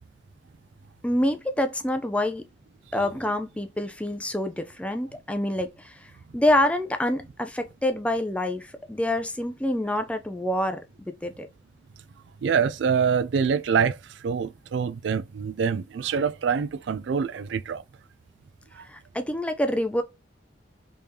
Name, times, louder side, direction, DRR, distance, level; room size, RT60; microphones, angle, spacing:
voice 1, 1.0-2.5 2.9-10.8 11.1-11.5 18.9-20.0, left 1 dB, 5° left, 0.4 m, -26 dB
voice 2, 12.4-17.8 18.8-18.9, right 6 dB, 70° right, 0.3 m, -25 dB
3.4 x 3.4 x 2.7 m
head